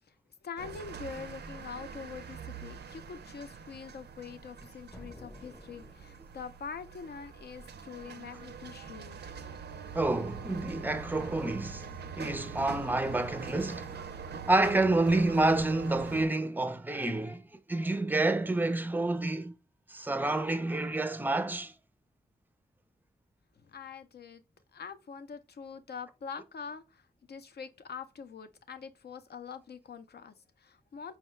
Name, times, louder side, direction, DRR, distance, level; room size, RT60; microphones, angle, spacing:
voice 1, 0.4-9.2 23.6-24.4 24.7-31.2, left 6 dB, 75° left, 0.5 m, -44 dB
sound 1, 0.6-16.2, right 6 dB, 80° right, 0.4 m, -44 dB
sound 2, 4.9-6.7, equal, 20° left, 0.8 m, -51 dB
voice 2, 9.9-11.9 12.1-14.0 14.5-17.4 17.7-19.5 19.9-21.7, right 2 dB, 10° right, 0.4 m, -28 dB
4.6 x 2.2 x 3.1 m
wide cardioid pair, 115°, 17 cm